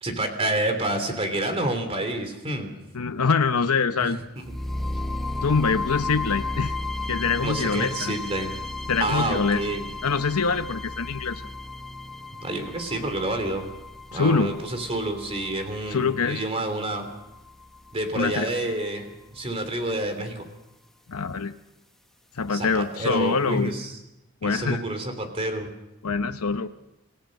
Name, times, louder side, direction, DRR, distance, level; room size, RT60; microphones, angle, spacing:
voice 1, 0.0-2.8 4.0-4.5 7.4-8.5 9.0-9.9 12.3-13.7 14.1-17.1 17.9-20.4 22.5-23.9 24.4-25.7, right 1 dB, 25° right, 6 dB, 3.3 m, -29 dB
voice 2, 2.9-4.2 5.4-6.7 7.1-8.2 8.9-9.6 10.0-11.4 14.1-14.5 15.9-16.4 18.1-18.5 21.1-21.5 22.4-23.7 24.4-24.9 26.0-26.7, left 5 dB, 85° left, 8 dB, 0.8 m, -24 dB
sound 1, 4.4-18.4, left 2 dB, ahead, 0.8 m, -34 dB
27.5 x 16.5 x 6.5 m, 0.93 s
head